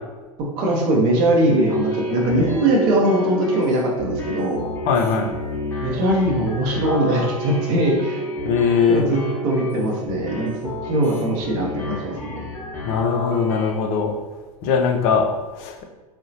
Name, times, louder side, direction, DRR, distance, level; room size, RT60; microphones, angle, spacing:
voice 1, 0.6-4.6 5.8-8.2 8.9-9.2 9.4-10.6 10.8-12.2, right 1 dB, 45° right, -1 dB, 0.6 m, -20 dB
sound 1, 1.5-13.7, left 1 dB, 10° left, 0.8 m, -30 dB
voice 2, 4.9-5.3 8.4-9.1 12.9-14.1 14.6-15.8, left 6 dB, 35° left, 4 dB, 0.4 m, -20 dB
3.7 x 2.1 x 2.7 m, 1.3 s
figure-of-eight pair, 90°, 19 cm